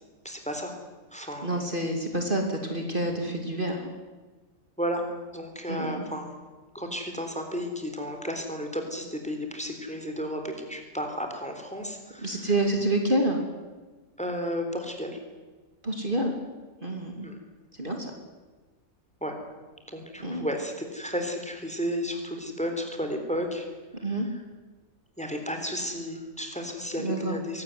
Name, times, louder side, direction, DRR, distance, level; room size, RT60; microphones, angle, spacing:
voice 1, 0.2-0.8 1.1-1.7 4.8-6.3 6.7-12.5 14.2-15.2 17.2-17.4 19.2-19.3 19.9-23.7 24.0-24.4 25.2-27.6, equal, 5° left, 4 dB, 3.9 m, -33 dB
voice 2, 1.4-3.9 5.7-6.0 12.2-13.4 15.8-16.3 16.8-17.3 17.8-18.1 20.2-20.5 24.0-24.3 27.0-27.4, right 1 dB, 35° right, 3 dB, 3.1 m, -28 dB
24.0 x 18.0 x 9.6 m, 1.3 s
omnidirectional pair, 1.5 m